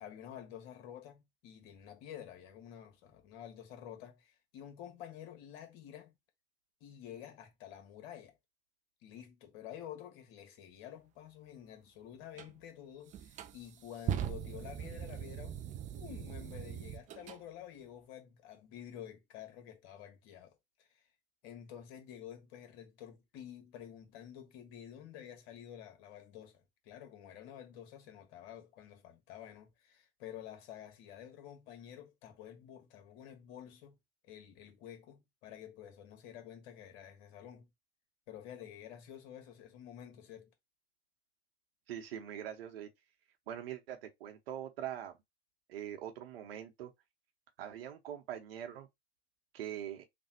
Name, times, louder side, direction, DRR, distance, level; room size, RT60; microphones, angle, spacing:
voice 1, 0.0-6.1 6.8-8.4 9.0-15.6 15.9-21.1 21.4-34.0 34.2-37.7 38.3-40.5, left 10 dB, 55° left, 1.4 m, -50 dB
sound 1, 12.4-12.5 13.1-17.4, right 9 dB, 25° right, 0.4 m, -40 dB
voice 2, 41.9-42.9 43.5-45.1 45.7-46.9 47.6-48.9 49.5-50.0, right 10 dB, 75° right, 1.0 m, -43 dB
3.4 x 2.3 x 4.3 m
hypercardioid pair, 105°, 30 cm